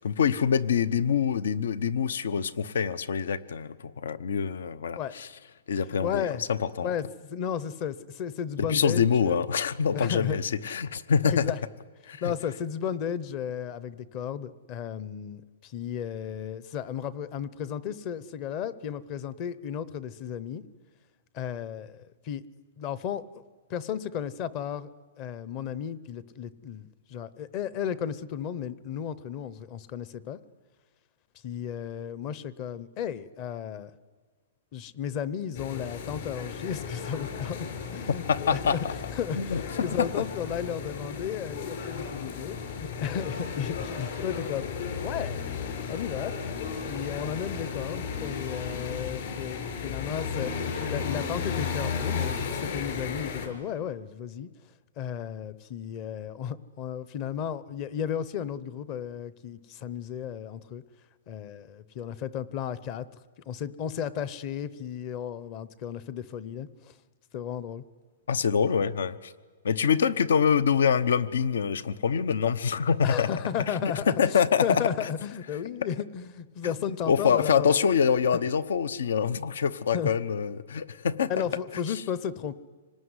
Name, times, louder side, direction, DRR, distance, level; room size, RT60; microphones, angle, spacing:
voice 1, 0.0-5.3 5.7-6.9 8.6-11.5 12.1-12.3 38.3-38.9 39.3-40.1 68.3-69.3 69.6-73.3 73.7-75.1 77.1-81.3 81.7-82.0, left 7 dB, 80° left, 17 dB, 0.9 m, -25 dB
voice 2, 6.0-6.4 6.8-9.4 9.9-10.4 11.2-11.6 12.2-20.6 21.3-22.4 22.8-23.4 23.7-24.9 25.2-30.4 31.4-33.9 34.7-44.7 45.0-54.5 55.0-60.8 61.3-63.1 63.5-66.9 67.3-67.8 73.0-77.8 79.9-80.1 81.3-82.5, left 8 dB, 25° left, 17 dB, 0.7 m, -34 dB
sound 1, 35.5-53.5, left 6 dB, 50° left, 4.6 m, -34 dB
26.0 x 19.0 x 9.7 m, 1.5 s
hypercardioid pair, 170°, 0 cm